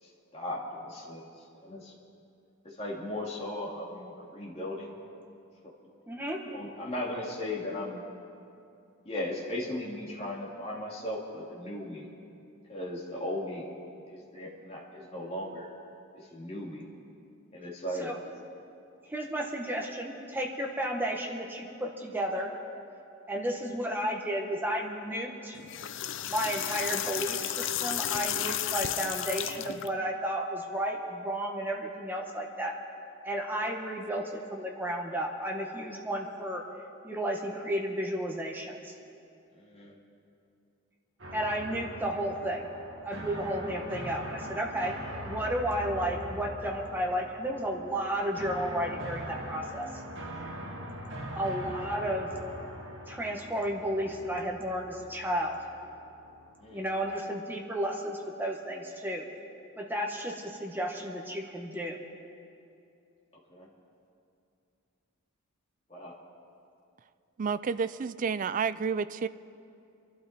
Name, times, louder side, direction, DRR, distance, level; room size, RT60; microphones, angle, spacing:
voice 1, 0.0-1.9 2.6-5.0 6.5-8.0 9.0-12.1 12.7-13.7 14.1-15.7 16.1-16.9 17.5-18.1 39.5-40.0 51.2-51.3 56.6-56.8 63.5-63.7 65.9-66.2, left 1 dB, 30° left, -3 dB, 2.6 m, -37 dB
voice 2, 6.1-6.4 18.0-18.2 19.1-22.5 23.3-25.6 26.3-32.7 33.2-36.6 37.0-38.9 41.3-42.7 43.0-44.9 45.2-49.9 51.3-52.3 53.1-55.6 56.7-59.3 59.8-62.0, equal, 10° right, 0 dB, 1.4 m, -33 dB
sound 1, 25.5-29.9, left 11 dB, 60° left, 0.5 m, -33 dB
sound 2, 41.2-57.1, right 1 dB, 60° right, 2.0 m, -42 dB
voice 3, 67.4-69.3, right 5 dB, 40° right, 14 dB, 0.3 m, -30 dB
25.5 x 12.0 x 4.3 m, 2.6 s
head